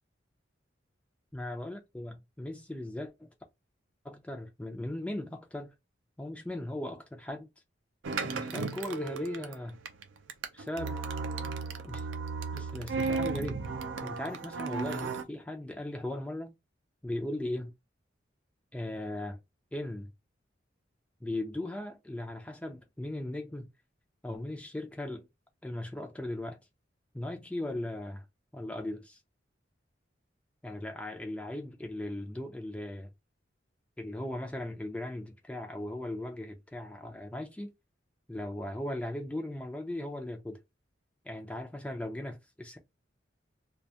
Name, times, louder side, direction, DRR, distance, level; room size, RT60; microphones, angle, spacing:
voice 1, 1.3-3.3 4.0-5.7 6.2-7.5 8.2-9.8 10.5-11.0 11.5-11.6 11.8-12.1 12.5-13.6 14.0-16.5 17.0-17.7 18.7-19.4 19.7-20.1 21.2-23.7 24.2-25.3 25.6-26.6 27.1-28.2 28.5-29.2 30.6-33.1 34.0-37.7 38.3-40.6 41.3-42.8, left 1 dB, 5° left, 0.3 m, -38 dB
sound 1, 8.0-15.2, right 4 dB, 85° right, 0.4 m, -35 dB
2.3 x 2.2 x 2.7 m
head